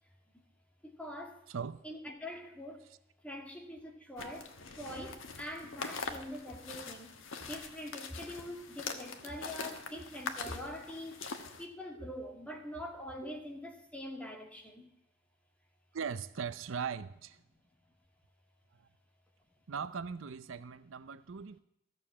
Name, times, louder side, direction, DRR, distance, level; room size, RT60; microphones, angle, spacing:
voice 1, 0.8-1.5 1.8-2.9 3.2-7.1 7.4-11.2 11.6-14.9, equal, 5° left, 1.9 m, -44 dB
voice 2, 1.5-1.8 9.9-10.0 11.9-12.1 13.2-13.3 15.9-17.4 18.8-18.9 19.7-21.6, right 6 dB, 80° right, 0.6 m, -40 dB
sound 1, 4.2-11.7, left 4 dB, 80° left, 1.3 m, -43 dB
14.5 x 6.9 x 7.3 m
head